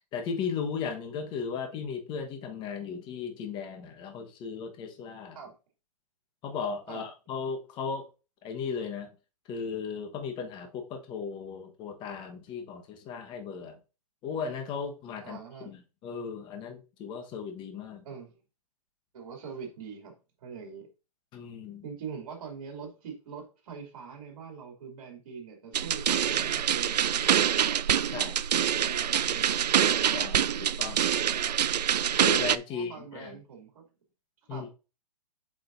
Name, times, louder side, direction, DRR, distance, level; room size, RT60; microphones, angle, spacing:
voice 1, 0.1-5.4 6.4-8.1 8.4-9.1 9.5-13.8 14.2-15.4 15.6-18.0 21.3-21.8 28.1-28.4 30.1-31.0 32.2-33.4 34.5-34.7, left 6 dB, 25° left, 1.2 m, -36 dB
voice 2, 15.2-15.7 18.0-18.4 19.1-20.1 20.4-20.9 21.8-27.3 28.6-29.6 32.7-33.9 34.5-34.7, right 6 dB, 55° right, 2.8 m, -43 dB
sound 1, 25.7-32.6, right 9 dB, 85° right, 0.4 m, -25 dB
7.9 x 5.1 x 2.6 m
hypercardioid pair, 140°, 21 cm